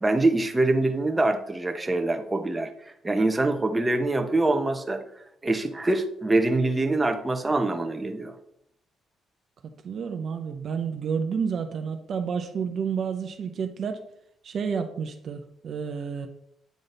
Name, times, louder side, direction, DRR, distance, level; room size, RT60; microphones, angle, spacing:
voice 1, 0.0-2.7 3.0-5.0 5.4-8.3, right 2 dB, 20° right, 5 dB, 1.0 m, -24 dB
voice 2, 9.6-14.1 14.4-16.3, right 6 dB, 55° right, 6 dB, 0.7 m, -30 dB
9.3 x 3.8 x 3.9 m, 0.72 s
cardioid pair, 90°, 0 cm